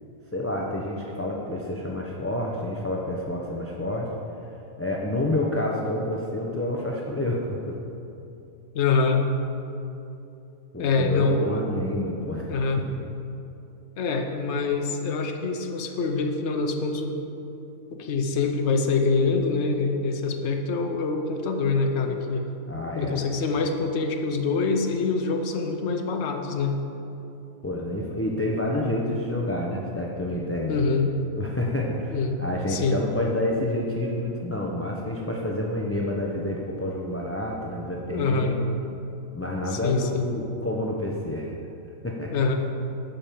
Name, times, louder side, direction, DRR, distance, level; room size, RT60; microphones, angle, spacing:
voice 1, 0.3-4.1 4.8-7.8 10.7-12.5 12.9-13.0 22.7-23.2 27.6-30.7 31.3-38.6 39.3-41.5 42.0-42.3, left 1 dB, 15° left, -2 dB, 0.7 m, -28 dB
voice 2, 8.7-9.2 10.8-11.5 12.5-12.9 14.0-17.2 18.0-22.4 23.0-26.8 30.7-31.1 32.1-32.4 32.7-33.0 38.1-38.6 39.7-40.3 42.3-42.6, left 4 dB, 60° left, 4 dB, 1.1 m, -25 dB
11.5 x 5.3 x 7.6 m, 2.8 s
omnidirectional pair, 1.4 m